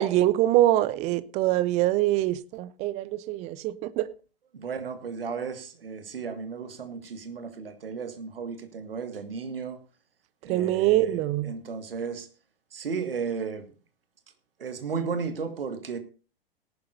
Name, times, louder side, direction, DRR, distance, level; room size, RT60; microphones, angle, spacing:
voice 1, 0.0-4.1 10.5-11.6, right 14 dB, 25° right, 0.5 m, -24 dB
voice 2, 4.5-9.8 10.4-11.1 11.4-12.3 12.7-13.7 14.6-16.0, right 5 dB, 70° right, 1.9 m, -34 dB
18.0 x 11.0 x 2.6 m
figure-of-eight pair, 105°, 30 cm